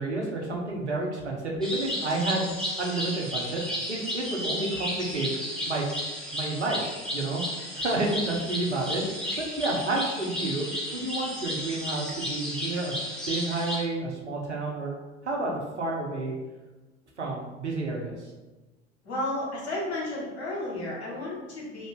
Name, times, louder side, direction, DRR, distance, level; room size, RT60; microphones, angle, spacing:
voice 1, 0.0-2.5 2.8-3.6 3.9-5.3 5.7-5.8 6.3-6.8 7.1-7.4 7.8-10.7 10.9-13.0 13.3-14.9 15.2-16.4 17.2-18.2, right 2 dB, 85° right, -1 dB, 0.7 m, -30 dB
sound 1, 1.6-13.8, equal, ahead, 0.8 m, -33 dB
voice 2, 19.0-21.9, left 1 dB, 70° left, -5 dB, 1.3 m, -32 dB
2.8 x 2.6 x 3.4 m, 1.2 s
figure-of-eight pair, 70°, 33 cm